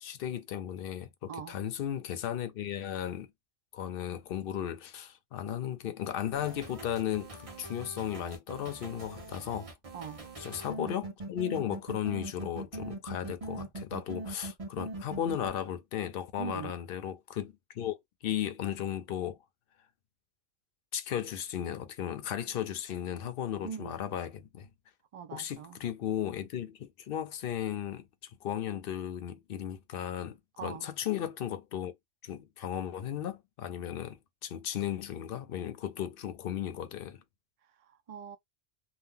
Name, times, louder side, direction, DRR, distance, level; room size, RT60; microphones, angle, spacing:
voice 1, 0.0-3.3 3.7-9.7 10.4-18.0 18.2-19.4 20.9-24.7 25.3-28.1 28.4-31.9 32.2-37.2, left 10 dB, 65° left, 0.7 m, -35 dB
voice 2, 1.3-1.6 9.9-10.3 16.4-16.7 23.6-24.0 25.1-25.8 30.6-30.9 37.8-38.4, right 7 dB, 65° right, 0.3 m, -42 dB
sound 1, 6.3-15.5, right 2 dB, 35° right, 0.9 m, -41 dB
2.7 x 2.2 x 3.5 m
omnidirectional pair, 1.2 m